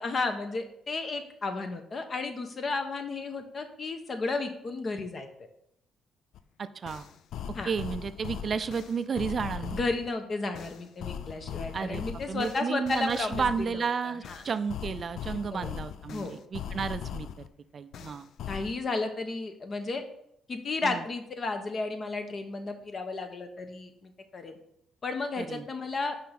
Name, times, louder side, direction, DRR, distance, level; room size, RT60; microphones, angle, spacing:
voice 1, 0.0-5.3 7.5-7.7 9.7-14.4 15.5-15.7 16.1-16.3 18.5-20.0 20.5-24.6 25.0-26.1, left 3 dB, 45° left, 7 dB, 1.1 m, -33 dB
sound 1, 6.3-6.4 6.9-10.1 10.5-13.8 14.2-17.5 17.9-18.8, left 9 dB, 70° left, 0.4 m, -39 dB
voice 2, 6.6-7.1 7.7-9.8 11.7-17.4 17.7-18.3 20.8-21.0 25.4-25.7, right 6 dB, 45° right, 13 dB, 0.4 m, -32 dB
5.6 x 5.1 x 5.8 m, 0.75 s
cardioid pair, 90°, 0 cm